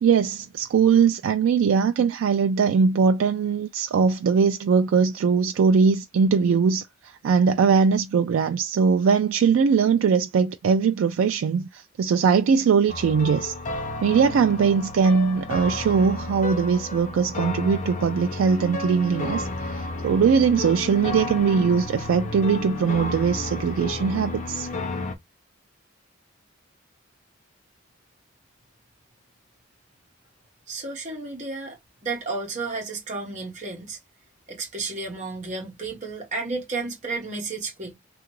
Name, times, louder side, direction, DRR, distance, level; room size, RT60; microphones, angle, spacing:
voice 1, 0.0-6.8 7.2-13.5 14.0-24.7, right 6 dB, 75° right, 0.3 m, -21 dB
sound 1, 12.9-25.1, left 2 dB, 35° left, 0.5 m, -32 dB
voice 2, 30.7-34.0 34.5-37.9, right 3 dB, 35° right, 0.9 m, -32 dB
2.8 x 2.3 x 3.0 m
head